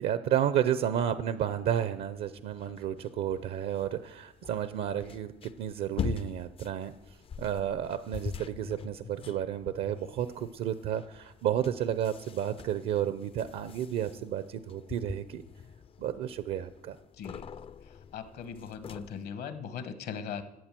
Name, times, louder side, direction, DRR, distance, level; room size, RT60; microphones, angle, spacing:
voice 1, 0.0-15.4 16.0-17.0, right 10 dB, 70° right, 12 dB, 0.6 m, -32 dB
sound 1, 0.9-19.3, left 7 dB, 35° left, 0.4 m, -44 dB
voice 2, 17.1-17.5 17.8-20.4, left 7 dB, 70° left, 10 dB, 1.4 m, -39 dB
12.5 x 8.5 x 7.6 m, 0.95 s
cardioid pair, 110°, 17 cm